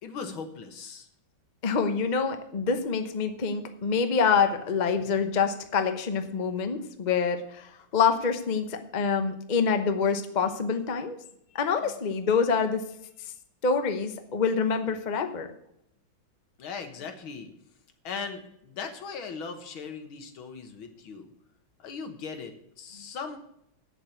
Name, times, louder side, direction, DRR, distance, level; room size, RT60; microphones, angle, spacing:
voice 1, 0.0-1.1 5.0-5.1 16.6-17.5 18.0-21.3 21.8-23.4, left 5 dB, 70° left, 7 dB, 2.1 m, -39 dB
voice 2, 1.6-11.2 11.5-12.8 13.6-15.5, left 5 dB, 55° left, 8 dB, 0.5 m, -26 dB
8.3 x 7.4 x 8.4 m, 0.74 s
omnidirectional pair, 2.4 m